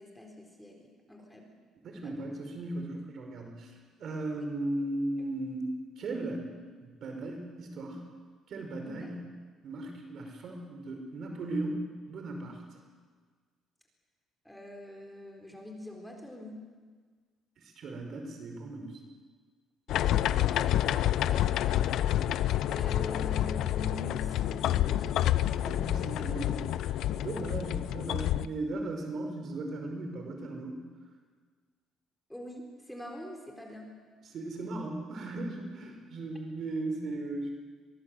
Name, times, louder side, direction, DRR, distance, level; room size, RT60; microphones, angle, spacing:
voice 1, 0.0-1.5 2.0-2.3 4.4-4.5 8.8-9.1 14.4-16.7 19.9-20.4 20.6-21.9 22.7-25.1 32.3-34.0, left 1 dB, 5° left, 1 dB, 4.3 m, -44 dB
voice 2, 1.8-6.5 6.8-8.1 8.5-9.3 9.6-12.8 17.6-19.0 25.6-30.8 34.3-37.5, right 2 dB, 55° right, 3 dB, 5.1 m, -37 dB
sound 1, 19.9-28.4, left 12 dB, 70° left, 0.7 m, -28 dB
24.0 x 19.5 x 8.0 m, 1.5 s
cardioid pair, 125°, 0 cm